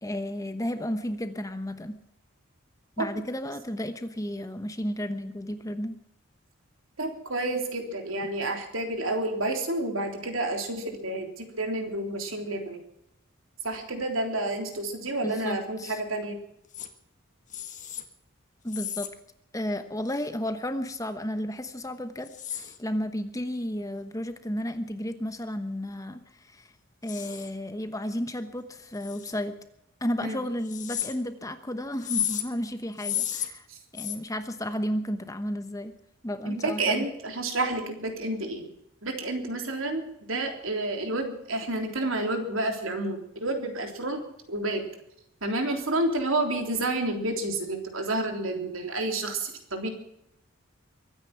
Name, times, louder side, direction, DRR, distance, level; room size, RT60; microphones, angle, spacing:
voice 1, 0.0-2.0 3.0-6.0 15.2-16.0 18.6-19.1 19.5-26.7 27.0-29.6 30.0-33.6 33.9-36.0 36.2-37.1, equal, 15° left, 9 dB, 1.0 m, -33 dB
voice 2, 7.0-12.8 13.6-16.4 30.2-30.4 36.5-38.7 39.0-44.2 44.5-44.9 45.4-49.9, right 2 dB, 70° right, 4 dB, 3.5 m, -30 dB
sound 1, 16.7-16.9 17.5-18.0 18.7-19.1 20.1-20.3 22.3-22.8 27.1-27.5 28.9-29.3 30.6-31.1 32.0-32.4 32.9-33.5 34.0-34.2, left 10 dB, 35° left, 1.6 m, -33 dB
23.5 x 9.8 x 6.0 m, 0.78 s
head